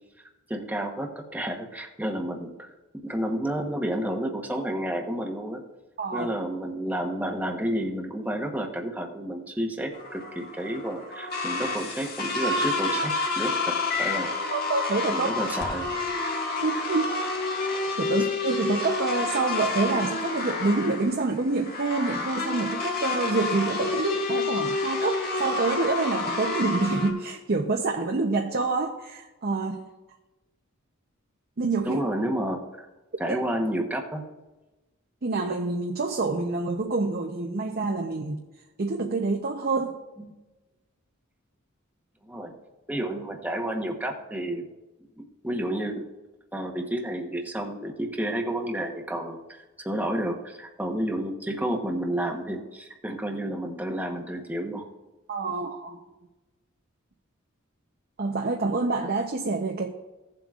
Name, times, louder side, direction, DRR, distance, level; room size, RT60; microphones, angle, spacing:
voice 1, 0.5-2.7 3.0-5.6 6.1-14.3 15.1-15.8 31.8-32.9 33.2-34.2 40.2-40.3 42.2-42.5 42.9-44.6 45.2-46.0 46.5-49.4 49.8-54.8, right 1 dB, 10° right, 1.0 m, -30 dB
voice 2, 6.0-6.3 14.5-15.4 16.6-17.2 18.0-29.8 31.6-32.0 33.3-33.4 35.2-38.4 38.8-40.0 55.3-56.0 58.2-59.9, right 3 dB, 50° right, 0.7 m, -27 dB
sound 1, 9.9-27.1, left 3 dB, 45° left, 1.7 m, -29 dB
16.0 x 7.5 x 2.4 m
head